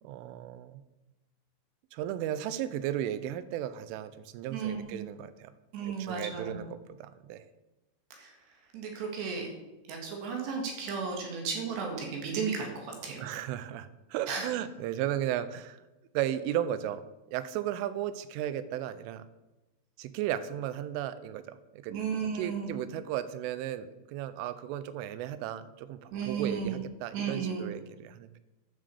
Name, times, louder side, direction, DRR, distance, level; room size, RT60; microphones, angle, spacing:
voice 1, 0.0-0.8 1.9-5.5 5.9-7.5 13.2-15.8 16.1-17.0 17.3-19.2 20.0-22.0 22.3-28.4, right 11 dB, 85° right, 13 dB, 3.2 m, -35 dB
voice 2, 4.5-5.0 5.7-6.6 8.2-8.3 8.7-9.5 9.9-13.2 14.3-14.5 21.9-22.7 26.1-26.8 27.1-27.7, right 5 dB, 65° right, 1 dB, 3.8 m, -34 dB
10.5 x 7.4 x 6.9 m, 1.0 s
omnidirectional pair, 5.6 m